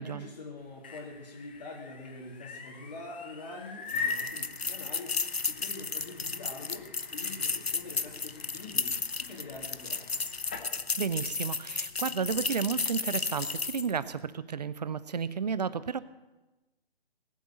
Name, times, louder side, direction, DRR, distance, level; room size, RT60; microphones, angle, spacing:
voice 1, 0.0-5.2 5.5-10.2, left 3 dB, 45° left, -3 dB, 3.0 m, -45 dB
sound 1, 0.6-10.7, left 4 dB, 10° left, 0.5 m, -42 dB
sound 2, 3.9-14.0, left 4 dB, 80° left, 0.9 m, -34 dB
voice 2, 11.0-16.0, right 6 dB, 40° right, 16 dB, 0.7 m, -32 dB
19.5 x 8.1 x 7.6 m, 1.1 s
figure-of-eight pair, 145°, 31 cm